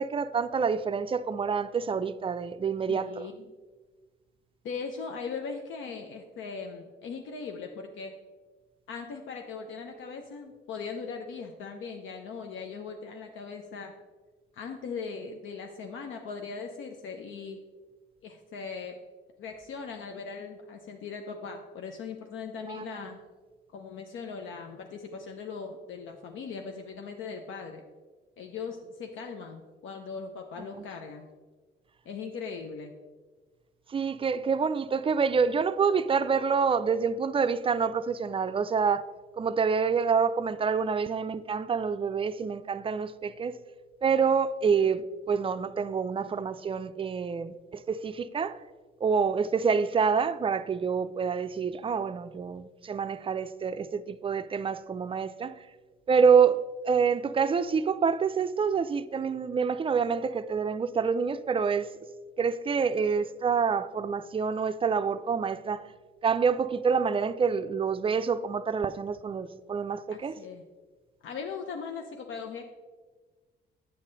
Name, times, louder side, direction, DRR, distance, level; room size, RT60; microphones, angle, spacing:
voice 1, 0.0-3.3 22.7-22.8 33.9-39.0 39.4-43.6 44.0-48.6 49.0-55.5 56.1-56.6 56.8-61.9 62.4-65.8 66.2-70.3, right 6 dB, 25° right, 0.3 m, -27 dB
voice 2, 2.9-3.5 4.6-8.2 8.9-13.9 14.5-17.6 18.2-19.0 19.4-23.2 23.7-27.8 28.4-31.3 32.1-32.9 70.1-70.6 71.2-72.7, left 5 dB, 80° left, 0.7 m, -39 dB
9.0 x 5.5 x 3.9 m
cardioid pair, 90°, 20 cm